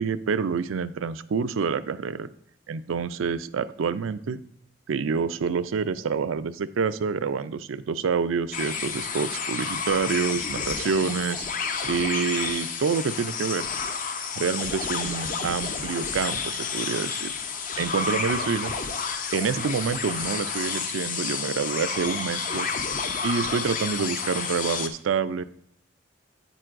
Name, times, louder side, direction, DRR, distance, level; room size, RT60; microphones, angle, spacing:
voice 1, 0.0-2.3 2.7-4.4 4.9-11.5 11.9-13.7 14.4-17.3 17.8-18.7 19.3-22.7 23.2-25.4, right 5 dB, 90° right, 14 dB, 0.4 m, -27 dB
sound 1, 8.5-24.9, left 5 dB, 45° left, 0.6 m, -30 dB
9.0 x 9.0 x 2.5 m, 0.70 s
head